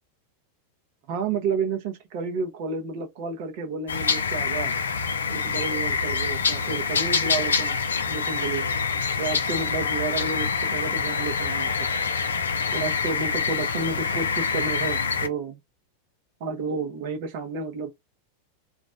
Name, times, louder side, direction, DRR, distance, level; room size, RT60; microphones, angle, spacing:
voice 1, 1.1-4.7 5.3-7.8 8.1-8.7 9.2-11.8 12.7-15.6 16.4-17.9, right 4 dB, 55° right, 0.7 m, -31 dB
sound 1, 3.9-15.3, left 5 dB, 80° left, 0.3 m, -26 dB
2.4 x 2.0 x 2.5 m
hypercardioid pair, 95°, 0 cm